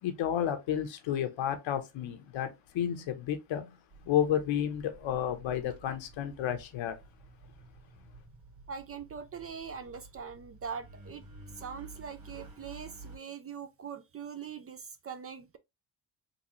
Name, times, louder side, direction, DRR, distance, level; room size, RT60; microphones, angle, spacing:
voice 1, 0.0-3.8 4.0-7.0, left 10 dB, 70° left, 0.9 m, -31 dB
Engine, 3.9-13.2, right 2 dB, 80° right, 2.0 m, -52 dB
voice 2, 8.7-11.2 11.5-15.6, right 6 dB, 35° right, 0.4 m, -42 dB
3.9 x 2.3 x 3.0 m
cardioid pair, 80°, 47 cm